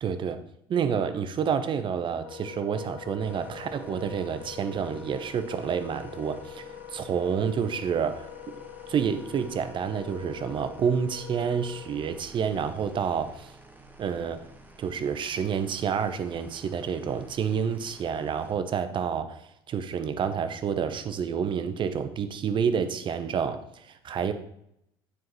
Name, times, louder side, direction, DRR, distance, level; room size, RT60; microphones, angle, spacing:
voice 1, 0.0-0.4 0.7-6.6 6.9-8.3 8.9-13.5 14.0-14.4 14.8-24.3, right 7 dB, 40° right, 10 dB, 0.8 m, -29 dB
Wind instrument woodwind instrument, 2.2-12.2, left 8 dB, 80° left, 0.6 m, -44 dB
sound 1, 3.2-18.6, right 2 dB, 15° right, 1.0 m, -51 dB
9.2 x 4.6 x 3.0 m, 0.76 s
hypercardioid pair, 65°, 13 cm